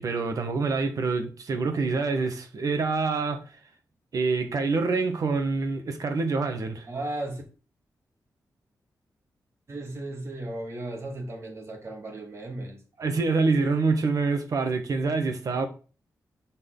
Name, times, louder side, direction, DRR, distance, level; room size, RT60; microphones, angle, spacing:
voice 1, 0.0-3.4 4.1-6.9 13.0-15.7, right 4 dB, 60° right, 1.5 m, -26 dB
voice 2, 6.9-7.4 9.7-12.8, right 2 dB, 45° right, 2.1 m, -35 dB
8.9 x 4.4 x 3.9 m
wide cardioid pair, 100°, 7 cm